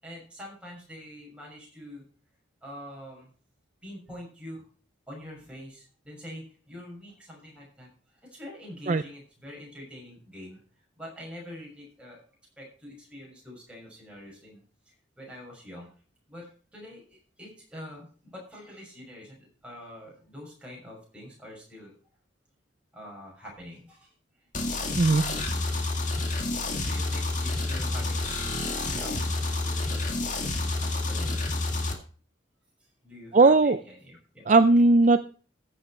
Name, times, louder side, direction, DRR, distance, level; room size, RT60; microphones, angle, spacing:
voice 1, 0.0-2.0 2.6-3.3 3.8-4.6 5.1-7.9 8.2-10.6 11.0-12.2 12.6-14.6 15.2-15.9 16.3-21.9 22.9-24.1 26.8-30.2 30.8-31.4 33.0-34.4, left 1 dB, 5° right, -3 dB, 6.4 m, -45 dB
sound 1, 24.5-31.9, left 2 dB, 40° left, 2.0 m, -29 dB
voice 2, 25.0-25.4 33.3-33.8 34.5-35.3, right 3 dB, 40° right, 11 dB, 0.5 m, -18 dB
15.0 x 7.4 x 4.4 m, 0.41 s
head